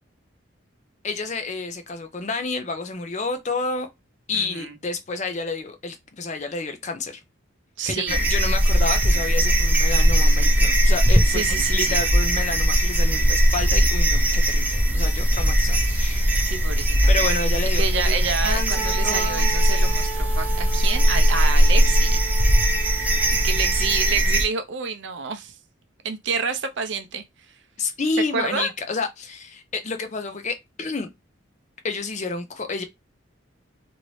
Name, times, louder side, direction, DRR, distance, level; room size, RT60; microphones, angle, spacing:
voice 1, 1.0-3.9 4.3-7.2 7.9-11.4 11.7-16.4 17.1-19.5 23.0-23.2 27.8-31.1 31.8-32.8, left 3 dB, 35° left, 0.5 m, -30 dB
voice 2, 4.3-4.8 7.8-8.3 11.3-12.0 16.4-17.1 17.8-22.2 23.3-25.6 26.0-27.2 28.3-28.7, right 5 dB, 65° right, 0.5 m, -28 dB
sound 1, 8.1-24.4, equal, 10° right, 0.6 m, -19 dB
Wind instrument woodwind instrument, 18.7-24.3, right 6 dB, 15° left, 1.3 m, -36 dB
2.9 x 2.7 x 3.1 m
head